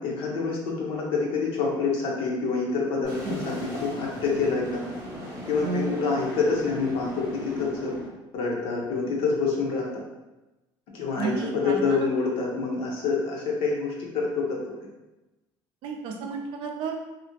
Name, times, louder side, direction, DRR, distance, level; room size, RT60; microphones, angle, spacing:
voice 1, 0.0-4.8 5.5-7.9 8.3-9.9 10.9-14.7, left 4 dB, 60° left, -2 dB, 0.6 m, -27 dB
sound 1, 3.0-8.1, left 1 dB, 25° right, 0.9 m, -37 dB
voice 2, 5.6-5.9 11.2-12.1 15.8-16.9, right 4 dB, 55° right, 2 dB, 0.4 m, -31 dB
2.4 x 2.0 x 2.8 m, 1.0 s
cardioid pair, 150°, 11 cm